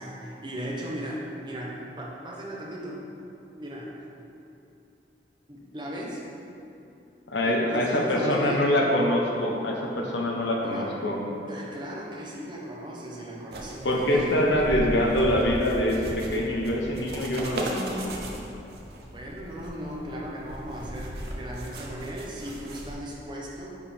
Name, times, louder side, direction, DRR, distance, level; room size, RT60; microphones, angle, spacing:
voice 1, 0.0-3.0 3.6-3.9 5.5-6.2 7.4-8.7 10.6-10.9 11.5-14.5 19.1-23.7, equal, 25° right, -3 dB, 1.0 m, -37 dB
voice 2, 7.3-11.2 13.8-18.1, left 1 dB, 90° left, -1 dB, 1.1 m, -25 dB
sound 1, 13.5-22.9, right 1 dB, 60° right, 0.8 m, -37 dB
9.7 x 4.9 x 3.6 m, 2.9 s
head